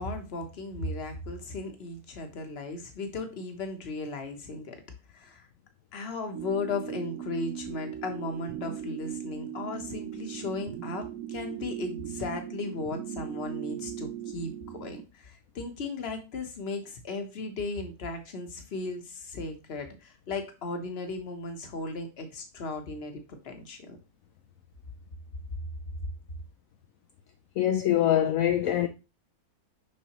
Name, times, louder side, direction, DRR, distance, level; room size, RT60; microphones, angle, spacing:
voice 1, 0.0-4.8 5.1-5.5 5.9-24.0, left 3 dB, 45° left, 1.3 m, -36 dB
sound 1, 6.3-15.0, right 11 dB, 75° right, 1.0 m, -39 dB
voice 2, 27.6-28.9, left 11 dB, 70° left, 0.9 m, -24 dB
6.4 x 5.4 x 3.0 m
omnidirectional pair, 1.6 m